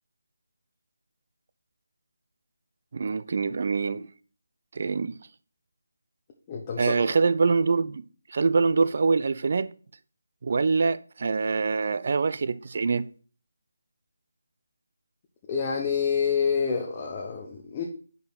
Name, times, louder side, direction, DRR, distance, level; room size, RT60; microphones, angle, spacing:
voice 1, 2.9-4.1 4.8-5.1 6.8-8.0 8.3-9.7 10.4-13.1, right 4 dB, 50° right, 0.4 m, -24 dB
voice 2, 6.5-7.2 15.5-17.8, left 6 dB, 25° left, 0.9 m, -28 dB
5.4 x 4.6 x 5.9 m
figure-of-eight pair, 165°, 0 cm